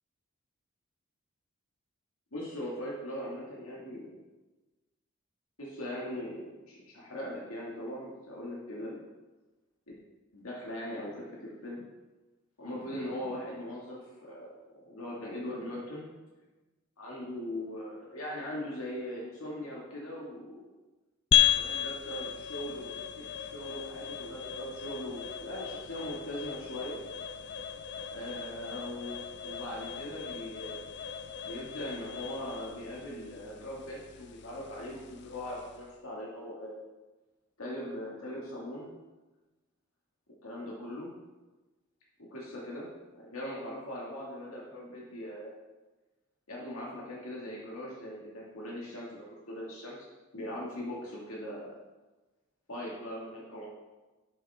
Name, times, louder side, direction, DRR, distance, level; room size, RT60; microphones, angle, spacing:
voice 1, 2.3-4.2 5.6-9.0 10.3-11.8 12.6-16.1 17.0-20.6 21.5-22.9 23.2-27.0 28.1-30.8 31.5-36.8 37.6-38.9 40.4-41.1 42.3-42.9 43.1-45.5 46.5-49.9 50.3-51.8 52.7-53.7, left 1 dB, 85° left, -5 dB, 2.2 m, -40 dB
sound 1, 21.3-35.9, left 11 dB, 55° left, 0.5 m, -35 dB
11.5 x 8.2 x 3.6 m, 1.2 s
head